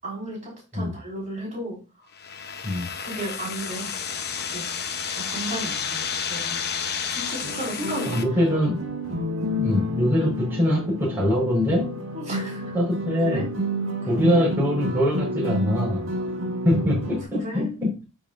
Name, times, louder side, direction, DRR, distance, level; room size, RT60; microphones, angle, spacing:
voice 1, 0.0-1.8 3.0-3.9 4.5-4.7 5.1-6.6 7.1-8.2 10.2-10.3 12.1-12.7 13.3-13.5 14.1-14.4 17.3-17.7, right 1 dB, 35° right, -4 dB, 4.7 m, -34 dB
sound 1, 2.1-8.2, left 7 dB, 45° left, 0.9 m, -31 dB
sound 2, 7.4-17.2, equal, 60° right, 1.6 m, -30 dB
voice 2, 8.1-8.8 9.6-11.9 12.7-13.4 14.1-16.1 16.6-18.0, left 1 dB, 10° right, -4 dB, 4.7 m, -23 dB
13.5 x 5.4 x 2.6 m, 0.31 s
head